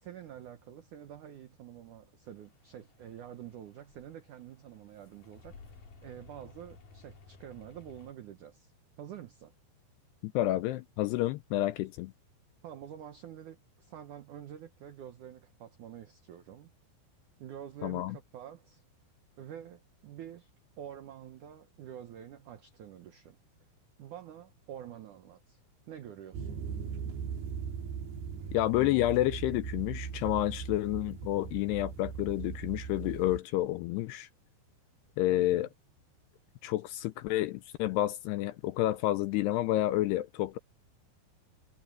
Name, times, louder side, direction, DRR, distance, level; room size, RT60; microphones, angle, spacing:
voice 1, 0.0-8.7 9.0-9.5 12.6-16.7 17.4-18.8 19.4-20.5 20.8-23.4 24.0-25.6 25.9-26.6 35.3-35.7, right 10 dB, 85° right, 1.7 m, -47 dB
sound 1, 2.2-8.1, left 4 dB, 50° left, 4.9 m, -56 dB
voice 2, 10.2-12.1 17.8-18.2 28.5-34.3 35.2-35.7 36.6-40.6, left 15 dB, 85° left, 2.5 m, -29 dB
sound 2, 26.3-33.4, right 6 dB, 65° right, 4.1 m, -39 dB
omnidirectional pair, 5.3 m